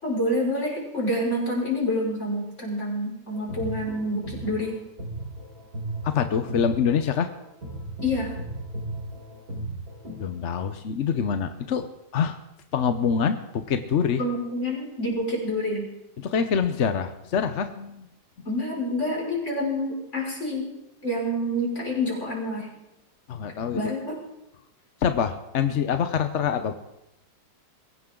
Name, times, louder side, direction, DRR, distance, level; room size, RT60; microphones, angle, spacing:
voice 1, 0.0-4.7 8.0-8.3 14.2-15.9 18.4-20.7 21.0-22.7 23.7-24.2, left 1 dB, 35° left, -3 dB, 6.0 m, -27 dB
sound 1, 3.3-10.3, right 1 dB, 50° right, 4.7 m, -36 dB
voice 2, 6.0-7.3 10.2-11.9 12.1-12.4 12.7-14.2 16.2-18.1 23.3-23.8 25.0-26.8, left 7 dB, 55° left, 9 dB, 0.8 m, -25 dB
22.5 x 17.0 x 3.8 m, 0.88 s
omnidirectional pair, 2.1 m